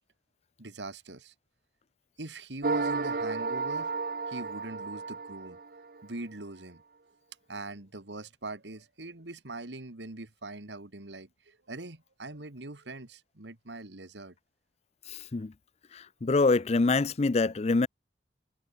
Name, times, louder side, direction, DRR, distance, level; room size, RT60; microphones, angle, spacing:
voice 1, 0.6-1.3 2.2-5.6 6.0-6.8 7.5-14.3, right 2 dB, 85° right, 2.2 m, -42 dB
sound 1, 2.6-6.0, right 4 dB, 55° right, 0.9 m, -32 dB
voice 2, 15.1-15.5 15.9-17.9, left 3 dB, 35° left, 0.5 m, -25 dB
head